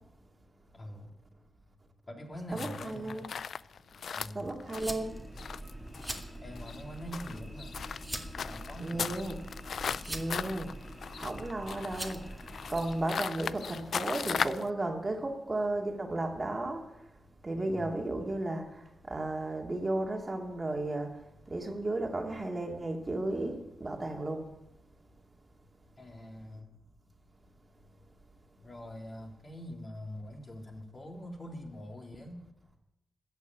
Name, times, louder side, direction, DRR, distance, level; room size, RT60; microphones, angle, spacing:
voice 1, 0.7-1.1 2.1-3.3 4.1-4.5 6.4-7.7 8.4-9.2 17.5-17.9 26.0-26.8 28.6-32.4, equal, 40° left, 3.3 m, -44 dB
sound 1, 2.5-14.7, left 6 dB, 70° left, 0.3 m, -38 dB
voice 2, 2.5-3.2 4.3-5.2 8.8-9.3 10.1-10.7 11.2-16.8 17.4-21.1 21.5-24.5, right 2 dB, 30° right, 2.2 m, -34 dB
sound 2, 4.8-13.1, right 1 dB, 5° right, 1.9 m, -43 dB
13.5 x 5.8 x 9.3 m
supercardioid pair, 50°, 0 cm